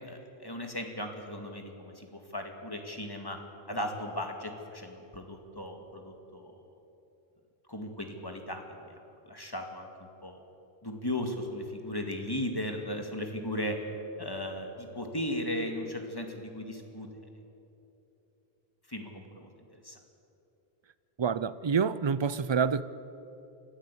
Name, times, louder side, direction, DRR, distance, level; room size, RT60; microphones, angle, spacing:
voice 1, 0.0-3.4 3.7-6.5 7.7-8.6 8.9-9.0 9.3-10.4 10.8-13.8 14.2-17.1 18.9-20.0, left 1 dB, 20° left, 2.2 m, -37 dB
voice 2, 21.2-22.8, right 6 dB, 40° right, 0.4 m, -27 dB
23.5 x 15.0 x 8.5 m
omnidirectional pair, 1.0 m